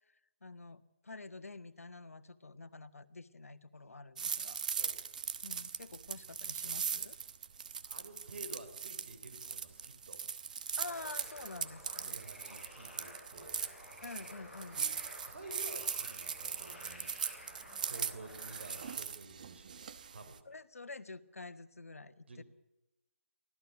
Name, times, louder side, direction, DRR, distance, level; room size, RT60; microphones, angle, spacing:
voice 1, 0.4-4.6 5.4-7.2 10.8-12.2 14.0-14.8 20.4-22.4, left 3 dB, 85° left, 11 dB, 1.7 m, -48 dB
sound 1, 4.2-20.4, right 7 dB, 35° right, 1.1 m, -40 dB
voice 2, 7.8-10.2 12.0-13.6 14.8-14.9 15.2-17.1 17.9-20.4 22.3-22.4, right 2 dB, 50° right, 8 dB, 5.0 m, -51 dB
sound 2, 10.8-18.9, left 1 dB, ahead, 6.8 m, -53 dB
24.5 x 16.5 x 8.3 m, 0.96 s
hypercardioid pair, 170°, 8 cm